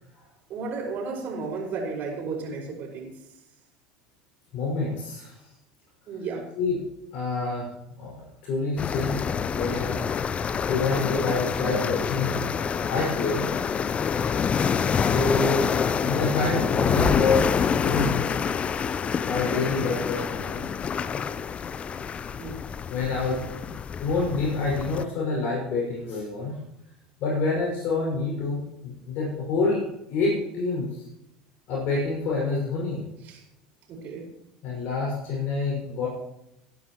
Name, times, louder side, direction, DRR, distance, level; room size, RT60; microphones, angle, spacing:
voice 1, 0.5-3.2 6.1-6.4 19.5-19.7 22.4-22.6 33.2-33.4 33.9-34.3, right 4 dB, 50° right, -1 dB, 5.2 m, -33 dB
voice 2, 4.5-5.5 6.6-6.8 7.1-7.7 8.0-9.2 9.5-10.1 10.7-12.3 12.9-13.5 15.0-15.7 15.9-18.3 19.3-20.6 22.9-23.7 24.0-26.6 27.2-29.8 30.1-31.1 31.7-33.0 34.6-36.1, left 3 dB, 60° left, -4 dB, 6.0 m, -27 dB
sound 1, 8.8-25.0, left 6 dB, 30° left, 0.6 m, -27 dB
18.5 x 11.0 x 3.1 m, 0.84 s
hypercardioid pair, 80°, 4 cm